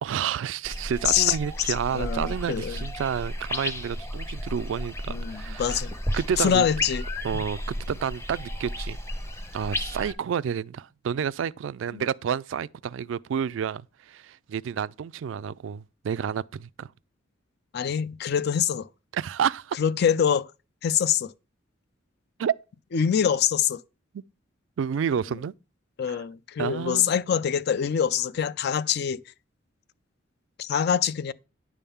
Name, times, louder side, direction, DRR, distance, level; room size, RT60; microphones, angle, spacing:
voice 1, 0.0-5.8 6.1-6.6 7.2-9.0 9.5-16.9 19.1-19.8 22.4-22.6 24.1-24.2 24.8-25.5 26.1-26.2 26.6-27.1, right 8 dB, 75° right, 0.3 m, -30 dB
sound 1, 0.6-10.1, left 1 dB, 15° left, 0.7 m, -33 dB
voice 2, 1.1-1.4 1.7-2.8 5.1-5.9 6.4-7.0 11.9-12.0 17.7-18.9 19.8-20.5 20.8-21.3 22.9-23.8 26.0-29.2 30.6-31.3, left 8 dB, 60° left, 0.4 m, -25 dB
9.9 x 3.6 x 6.9 m
head